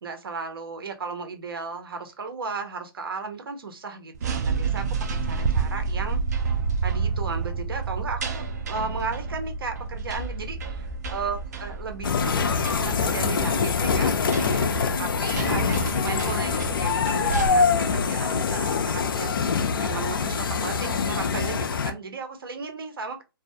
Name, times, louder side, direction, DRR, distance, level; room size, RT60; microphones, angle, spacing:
voice 1, 0.0-5.0 5.2-6.2 6.8-19.4 19.8-23.2, right 4 dB, 70° right, 0.7 m, -35 dB
sound 1, 4.1-17.5, right 5 dB, 45° right, 0.4 m, -30 dB
sound 2, 10.1-16.2, left 1 dB, 10° right, 0.8 m, -42 dB
sound 3, 12.0-21.9, left 5 dB, 60° left, 0.4 m, -24 dB
2.4 x 2.0 x 2.6 m
hypercardioid pair, 155°, 13 cm